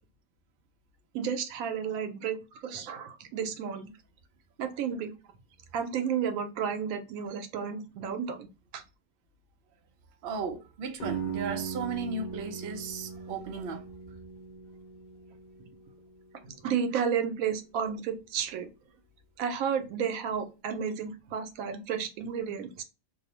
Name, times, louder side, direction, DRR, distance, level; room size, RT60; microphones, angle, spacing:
voice 1, 1.1-3.9 4.6-5.1 5.7-8.5 8.7-8.8 16.4-18.7 19.4-22.8, right 7 dB, 90° right, 1.0 m, -32 dB
voice 2, 10.2-13.9, right 4 dB, 60° right, 0.6 m, -35 dB
sound 1, 11.0-16.8, right 6 dB, 45° left, 0.8 m, -39 dB
2.6 x 2.0 x 2.7 m
omnidirectional pair, 1.4 m